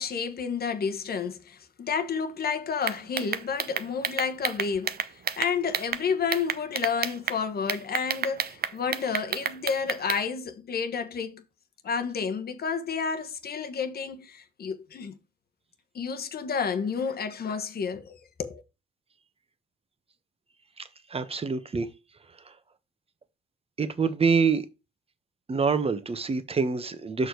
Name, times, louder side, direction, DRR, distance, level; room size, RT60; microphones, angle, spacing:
voice 1, 0.0-11.4 11.8-15.2 15.9-18.6, left 6 dB, 50° left, 1.3 m, -30 dB
sound 1, 2.8-6.0 6.3-7.4 7.7-10.2, right 8 dB, 50° right, 0.7 m, -30 dB
voice 2, 21.1-21.9 23.8-24.7 25.5-27.3, right 5 dB, 30° right, 1.2 m, -26 dB
6.4 x 4.9 x 4.7 m
cardioid pair, 90°, 20 cm